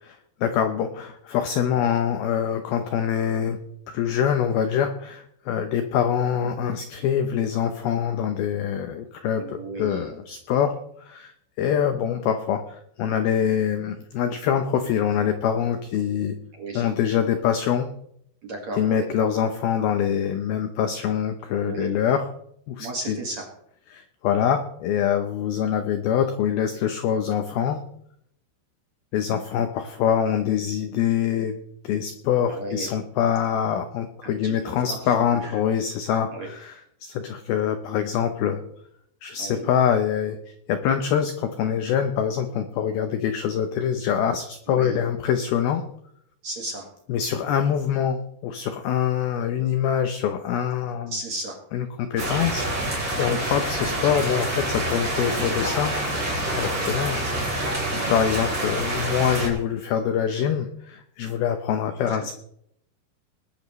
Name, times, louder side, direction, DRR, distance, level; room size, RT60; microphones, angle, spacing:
voice 1, 0.0-3.6 3.9-16.4 16.7-17.9 18.8-22.3 22.7-23.2 23.9-27.8 29.1-31.6 31.8-38.6 39.2-40.4 40.7-45.8 47.1-51.1 51.7-55.9 56.6-57.2 58.1-62.3, left 8 dB, 80° left, 7 dB, 2.2 m, -24 dB
voice 2, 9.4-10.1 16.5-16.8 18.4-19.1 21.6-21.9 22.8-23.5 32.5-32.9 34.2-35.6 36.3-36.5 39.4-39.7 44.7-45.0 46.4-46.9 51.1-51.6 58.1-58.2 62.1-62.3, right 2 dB, 55° right, 0 dB, 2.2 m, -35 dB
sound 1, 52.2-59.5, right 1 dB, 20° right, 3.7 m, -27 dB
20.0 x 12.0 x 3.1 m, 0.72 s
omnidirectional pair, 5.4 m